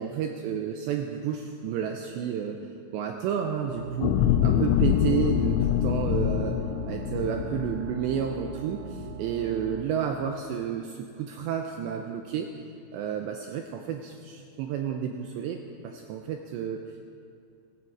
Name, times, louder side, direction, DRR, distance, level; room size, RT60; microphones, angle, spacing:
voice 1, 0.0-2.6 2.9-6.6 6.9-12.5 12.9-17.0, right 8 dB, 85° right, 3 dB, 2.5 m, -31 dB
sound 1, 3.7-9.8, right 7 dB, 70° right, 2.6 m, -39 dB
sound 2, 4.0-8.5 9.0-9.1, left 11 dB, 85° left, 2.9 m, -25 dB
17.5 x 16.5 x 4.7 m, 2.3 s
omnidirectional pair, 5.9 m